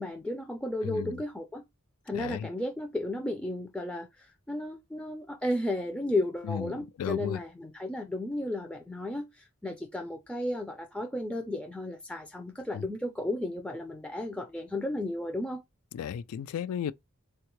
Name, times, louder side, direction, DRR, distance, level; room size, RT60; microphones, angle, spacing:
voice 1, 0.0-1.6 2.1-15.6, left 1 dB, 5° left, 0.3 m, -34 dB
voice 2, 0.8-1.1 2.1-2.5 6.4-7.4 12.7-12.8 15.9-16.9, left 9 dB, 85° left, 0.3 m, -34 dB
3.5 x 2.3 x 2.9 m
head